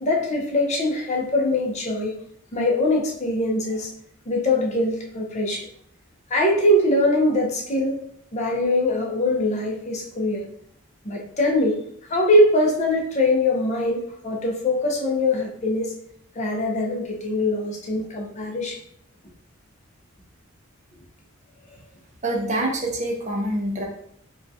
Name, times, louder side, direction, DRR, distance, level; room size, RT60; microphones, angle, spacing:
voice 1, 0.0-2.2 2.5-3.9 4.3-5.7 6.3-7.9 8.3-10.5 11.0-11.8 12.1-16.0 16.3-18.8, left 1 dB, 30° left, 0 dB, 0.6 m, -22 dB
voice 2, 22.2-23.8, right 1 dB, 35° right, -1 dB, 0.5 m, -25 dB
3.6 x 2.3 x 2.6 m, 0.68 s
head